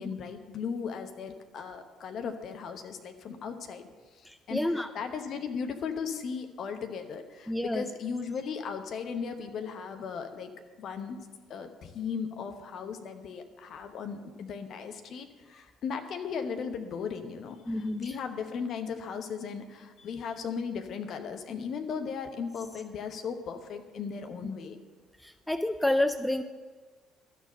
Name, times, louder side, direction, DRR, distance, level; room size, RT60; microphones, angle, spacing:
voice 1, 0.0-10.5 10.8-11.2 11.5-24.8, left 6 dB, 50° left, 6 dB, 1.0 m, -37 dB
voice 2, 4.3-4.9 7.5-7.8 17.7-18.1 25.2-26.4, left 1 dB, 5° left, 10 dB, 0.5 m, -29 dB
12.5 x 6.8 x 6.6 m, 1.4 s
figure-of-eight pair, 50°, 0 cm